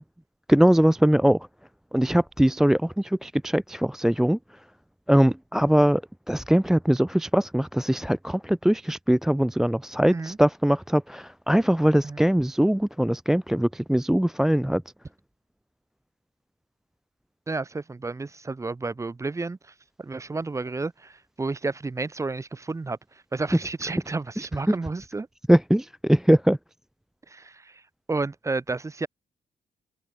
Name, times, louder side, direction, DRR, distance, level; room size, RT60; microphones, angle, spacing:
voice 1, 0.5-1.5 1.9-4.4 5.1-6.0 6.3-14.8 25.5-26.6, equal, 5° right, 0.4 m, -21 dB
voice 2, 17.5-19.6 20.0-23.0 23.3-25.3 27.3-27.8 28.1-29.1, right 3 dB, 20° right, 2.1 m, -31 dB
cardioid pair, 130°, 15 cm